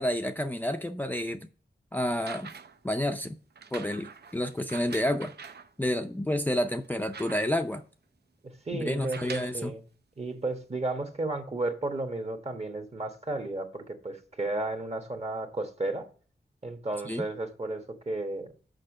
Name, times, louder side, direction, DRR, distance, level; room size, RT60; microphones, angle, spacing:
voice 1, 0.0-1.5 1.9-2.5 2.8-3.4 3.7-5.3 5.8-7.8 8.7-9.7 17.1-17.3, left 1 dB, 10° left, 0.4 m, -30 dB
sound 1, 2.1-2.9 3.6-5.7 6.3-6.4 6.7-7.8 8.9-9.6 10.6-10.7, right 5 dB, 70° right, 0.6 m, -45 dB
voice 2, 8.6-9.8 10.2-16.1 16.6-18.5, right 2 dB, 35° right, 1.2 m, -33 dB
6.5 x 5.0 x 6.2 m
wide cardioid pair, 90°, 18 cm